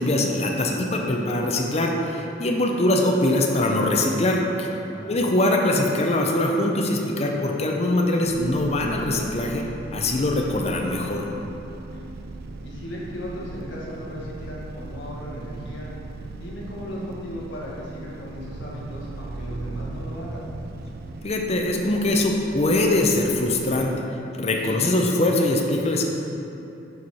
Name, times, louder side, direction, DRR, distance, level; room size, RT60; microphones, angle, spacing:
voice 1, 0.0-4.7 5.1-9.6 9.9-11.3 21.2-23.9 24.3-26.0, left 1 dB, 35° left, 1 dB, 0.6 m, -22 dB
sound 1, 8.2-23.9, right 2 dB, 50° right, 0.4 m, -38 dB
voice 2, 12.6-15.9 16.4-20.5 24.6-24.8, equal, 60° left, -5 dB, 1.5 m, -36 dB
7.1 x 4.7 x 4.2 m, 2.9 s
head